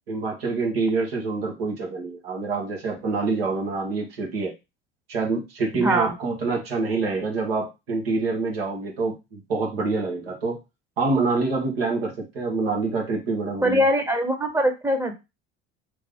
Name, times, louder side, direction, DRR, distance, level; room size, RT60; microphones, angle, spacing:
voice 1, 0.1-4.5 5.1-10.6 11.0-13.9, right 3 dB, 75° right, -1 dB, 1.4 m, -26 dB
voice 2, 5.7-6.1 13.6-15.1, equal, 10° right, 5 dB, 1.0 m, -22 dB
3.3 x 2.0 x 3.6 m, 0.24 s
figure-of-eight pair, 70°, 30 cm